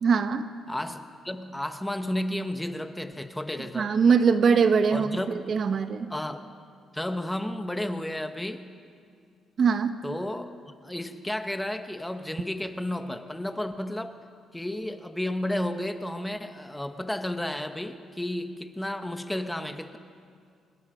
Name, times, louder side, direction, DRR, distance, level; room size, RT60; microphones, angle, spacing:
voice 1, 0.0-0.5 3.7-5.2 5.5-6.1 9.6-10.0, right 6 dB, 50° right, 10 dB, 1.0 m, -22 dB
voice 2, 0.7-3.9 4.9-5.4 6.1-6.4 6.9-8.7 10.0-10.5 10.8-14.2 14.5-20.0, left 1 dB, 10° left, 8 dB, 1.2 m, -32 dB
26.0 x 21.5 x 5.1 m, 2.2 s
cardioid pair, 90°, 0 cm